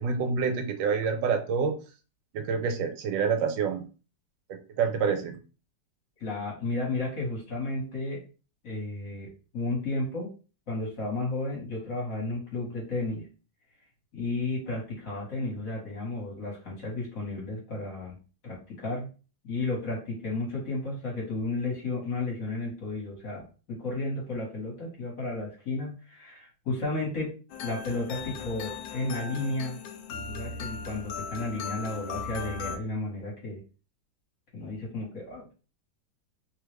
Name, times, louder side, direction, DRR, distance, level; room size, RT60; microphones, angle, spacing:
voice 1, 0.0-1.8 2.3-3.9 4.5-5.4, right 5 dB, 80° right, 6 dB, 1.3 m, -27 dB
voice 2, 6.2-8.2 8.6-10.3 10.7-13.2 14.1-18.2 18.4-19.1 19.4-27.3 27.6-29.8 30.1-33.6 34.5-35.5, left 2 dB, 50° left, -4 dB, 1.7 m, -33 dB
sound 1, 27.5-32.8, left 5 dB, 90° left, 1.3 m, -38 dB
3.4 x 2.4 x 3.1 m, 0.35 s
omnidirectional pair, 2.0 m